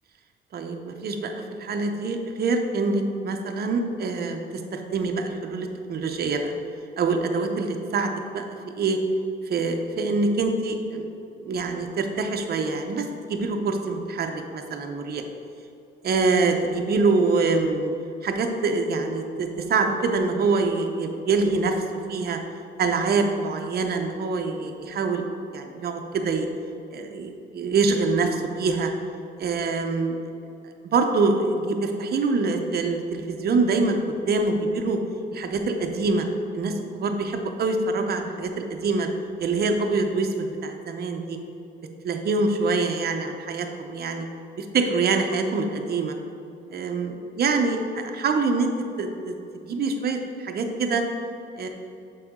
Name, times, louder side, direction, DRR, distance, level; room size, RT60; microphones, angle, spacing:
voice 1, 0.5-4.4 4.7-6.5 7.0-8.4 8.8-9.0 9.5-11.1 11.4-15.2 16.0-17.9 18.2-21.7 22.1-22.4 22.8-25.2 25.5-26.5 26.9-28.9 29.4-30.2 30.8-34.0 34.3-35.0 35.3-36.3 36.5-39.1 39.4-41.4 42.0-44.2 44.6-46.1 46.7-48.7 49.0-51.0 51.6-51.7, right 3 dB, 50° right, 4 dB, 0.7 m, -25 dB
6.7 x 4.9 x 3.6 m, 2.6 s
cardioid pair, 90°, 20 cm